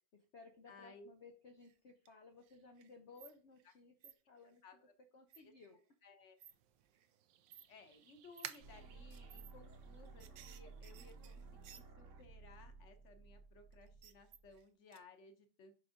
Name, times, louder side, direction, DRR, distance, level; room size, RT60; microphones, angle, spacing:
voice 1, 0.1-4.6 5.1-5.8, left 4 dB, 70° left, 5 dB, 0.6 m, -59 dB
voice 2, 0.7-1.1 4.6-4.9 5.4-5.5 6.0-6.4 7.7-15.7, left 3 dB, 50° left, 7 dB, 1.0 m, -60 dB
sound 1, 1.6-2.1 2.4-3.7 4.0-4.1 5.3-5.7 6.4-6.5 6.9-7.1 7.5-7.7 8.3-8.6 9.1-9.5 9.8-12.2 13.7-14.6 14.9-15.0, right 10 dB, 90° right, 0.7 m, -59 dB
sound 2, 6.5-11.7, right 11 dB, 75° right, 1.2 m, -56 dB
sound 3, 8.6-14.6, right 4 dB, 45° right, 1.2 m, -56 dB
5.3 x 4.7 x 5.0 m, 0.37 s
omnidirectional pair, 2.2 m